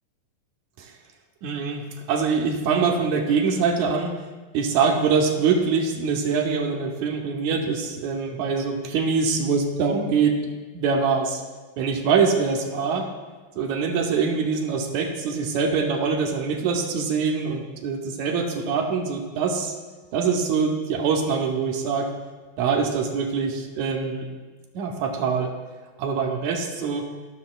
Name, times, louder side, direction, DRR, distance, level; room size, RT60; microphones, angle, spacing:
voice 1, 1.4-4.1 4.5-10.4 10.7-11.4 11.8-13.1 13.6-19.7 20.1-22.1 22.6-24.3 24.7-25.5 26.0-27.1, right 5 dB, 75° right, 2 dB, 2.2 m, -24 dB
15.5 x 6.5 x 2.3 m, 1.4 s
omnidirectional pair, 3.4 m